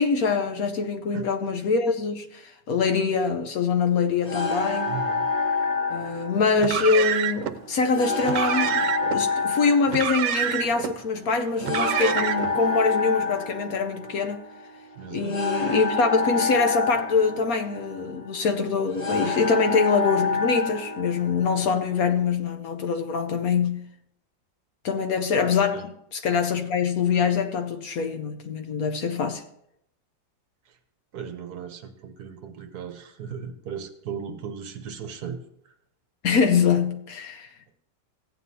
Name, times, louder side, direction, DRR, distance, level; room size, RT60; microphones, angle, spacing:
voice 1, 0.0-5.0 5.9-14.4 15.1-23.8 24.8-29.4 36.2-37.5, left 5 dB, 65° left, 1.1 m, -24 dB
sound 1, 4.2-21.9, left 4 dB, 25° left, 1.4 m, -28 dB
voice 2, 4.9-5.3 15.0-15.4 25.7-25.8 31.1-35.4, right 7 dB, 65° right, 1.3 m, -36 dB
Car, 6.6-7.5 8.2-9.2 9.9-10.9 11.6-12.6, right 10 dB, 85° right, 1.3 m, -27 dB
15.0 x 9.3 x 2.8 m
omnidirectional pair, 1.8 m